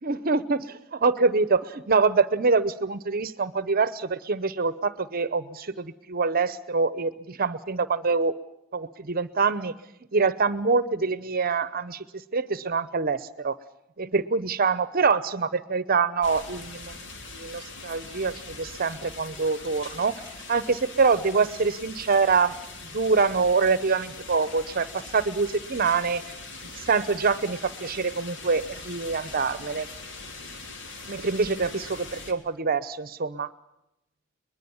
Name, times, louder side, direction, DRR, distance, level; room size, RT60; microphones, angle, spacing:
voice 1, 0.0-8.3 8.7-9.7 10.1-13.6 14.0-17.0 17.3-20.2 20.5-22.6 22.9-26.2 26.6-29.9 31.1-33.5, right 4 dB, 50° right, 15 dB, 0.8 m, -25 dB
sound 1, 16.2-32.3, left 3 dB, 65° left, 3.5 m, -42 dB
23.0 x 21.0 x 7.1 m, 0.88 s
head